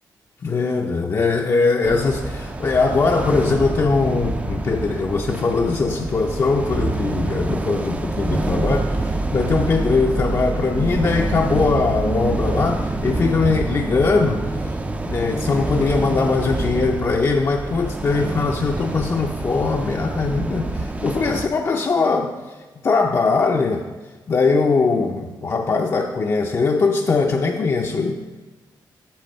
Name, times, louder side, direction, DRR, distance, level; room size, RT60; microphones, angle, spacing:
voice 1, 0.4-14.8 15.0-22.3 22.8-23.8 24.3-28.2, left 4 dB, 40° left, 1 dB, 0.5 m, -21 dB
sound 1, 1.8-21.5, right 2 dB, 15° right, 0.4 m, -26 dB
8.4 x 6.2 x 4.2 m, 1.2 s
cardioid pair, 110°, 8 cm